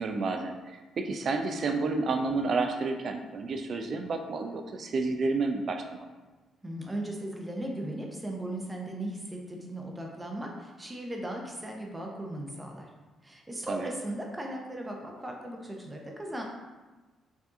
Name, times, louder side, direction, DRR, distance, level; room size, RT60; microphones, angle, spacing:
voice 1, 0.0-6.1 13.7-13.9, right 3 dB, 55° right, 5 dB, 0.3 m, -30 dB
voice 2, 6.6-12.9 13.2-16.4, right 1 dB, 15° right, 0 dB, 0.7 m, -37 dB
4.7 x 2.6 x 2.5 m, 1.2 s
cardioid pair, 90°, 0 cm